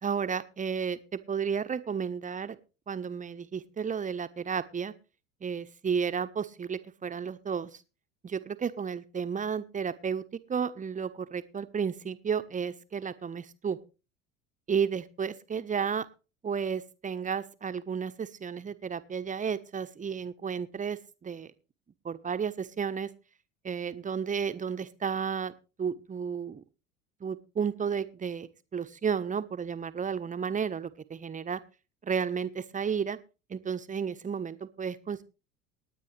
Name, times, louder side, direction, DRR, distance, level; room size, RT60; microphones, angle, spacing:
voice 1, 0.0-2.6 2.9-4.9 5.4-7.8 8.2-10.2 10.5-13.8 14.7-16.1 16.4-21.5 22.0-23.1 23.6-25.5 25.8-26.6 27.2-31.6 32.0-33.2 33.5-35.2, right 6 dB, 20° right, 12 dB, 1.1 m, -32 dB
19.5 x 9.5 x 3.3 m, 0.32 s
figure-of-eight pair, 70°, 41 cm